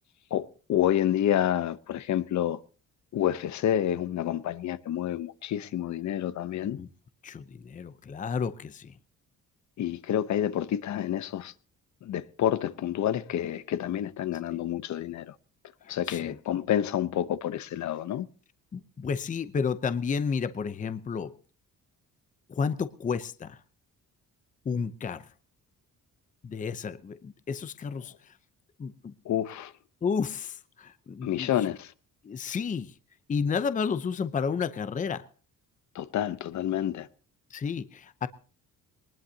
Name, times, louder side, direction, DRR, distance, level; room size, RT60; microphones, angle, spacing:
voice 1, 0.3-2.6 3.1-6.8 9.8-11.5 12.0-15.3 15.9-18.3 29.2-29.7 31.2-31.9 35.9-37.1, left 11 dB, 60° left, 0.9 m, -28 dB
voice 2, 7.2-9.0 14.5-14.6 15.8-16.4 18.7-21.3 22.5-23.6 24.6-25.3 26.4-28.4 28.8-29.1 30.0-31.7 32.2-32.9 33.3-35.3 37.5-38.3, left 6 dB, 25° left, 0.7 m, -32 dB
22.0 x 19.5 x 2.8 m
cardioid pair, 180°, 33 cm